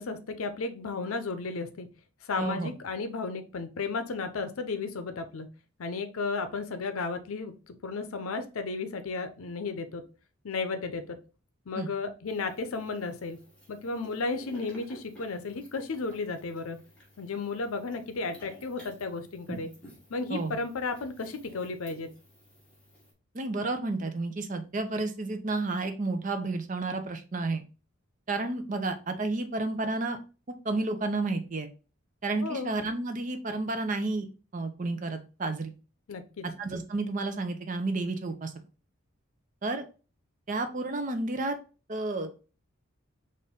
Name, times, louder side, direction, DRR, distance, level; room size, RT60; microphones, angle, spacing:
voice 1, 0.0-1.9 2.2-5.5 5.8-10.1 10.4-11.2 11.7-13.4 13.7-16.8 17.2-19.7 20.1-22.1 32.4-32.7 36.1-36.4, left 4 dB, 80° left, 9 dB, 0.6 m, -34 dB
voice 2, 2.4-2.7 11.8-11.9 20.3-20.6 23.3-27.6 28.3-30.2 30.6-31.7 32.2-34.3 34.5-35.7 36.4-38.5 39.6-39.8 40.5-41.6 41.9-42.3, right 2 dB, 35° right, 7 dB, 0.5 m, -31 dB
sound 1, 12.3-23.1, right 1 dB, 5° left, 1.3 m, -52 dB
4.2 x 2.5 x 3.6 m, 0.34 s
head